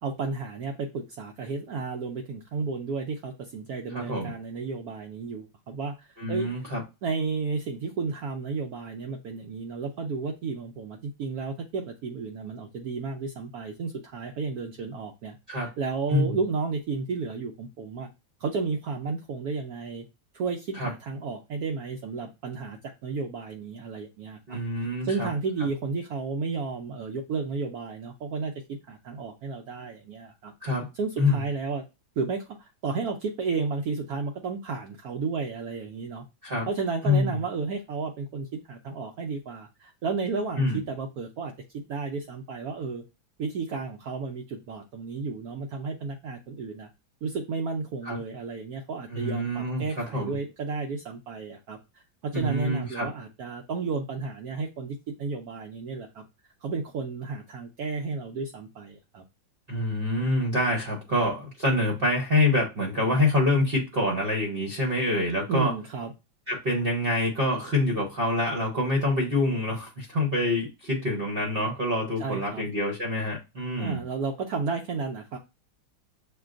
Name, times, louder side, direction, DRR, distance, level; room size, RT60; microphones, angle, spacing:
voice 1, 0.0-6.5 7.0-18.1 18.4-20.0 20.3-24.6 25.0-30.5 30.9-31.8 32.2-36.2 36.7-43.0 43.4-46.9 47.2-59.2 65.5-66.1 72.2-72.7 73.8-75.4, right 4 dB, 90° right, 0.8 m, -32 dB
voice 2, 3.9-4.3 6.2-6.8 15.5-15.7 16.1-16.3 20.8-20.9 24.5-25.3 30.6-30.9 31.2-31.4 36.4-36.7 37.0-37.3 40.6-40.8 48.0-48.2 49.1-50.4 52.3-53.1 59.7-65.8 66.5-74.0, left 1 dB, 50° right, 0.6 m, -26 dB
6.7 x 2.3 x 2.4 m
omnidirectional pair, 2.2 m